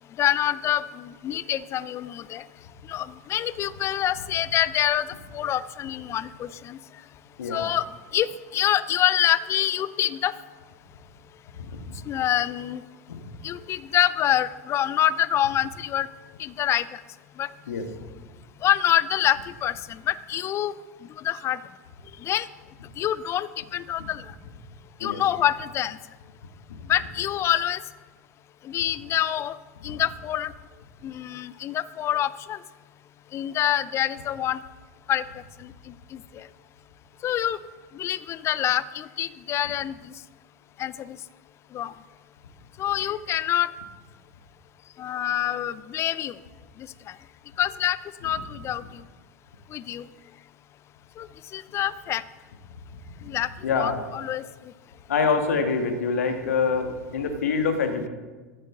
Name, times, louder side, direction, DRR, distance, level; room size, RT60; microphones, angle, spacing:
voice 1, 0.2-2.4 2.9-5.1 5.3-6.8 7.5-7.8 8.1-10.3 12.1-12.8 13.4-16.1 16.4-16.9 17.4-17.5 18.6-19.7 20.1-20.7 21.2-21.6 22.2-22.5 23.0-24.2 25.0-26.0 26.9-27.8 28.7-29.6 29.8-30.5 31.0-32.6 33.3-34.6 35.1-35.2 37.2-37.6 38.0-39.9 40.8-41.2 41.7-41.9 42.8-43.7 45.0-46.3 47.6-48.0 48.2-48.8 49.7-50.1 51.2-51.3 51.5-52.2 53.3-53.5 53.8-54.4, left 11 dB, 30° left, 17 dB, 0.5 m, -26 dB
voice 2, 53.6-54.0 55.1-58.1, left 5 dB, 70° left, 6 dB, 1.8 m, -25 dB
14.0 x 14.0 x 3.9 m, 1.3 s
figure-of-eight pair, 90°, 9 cm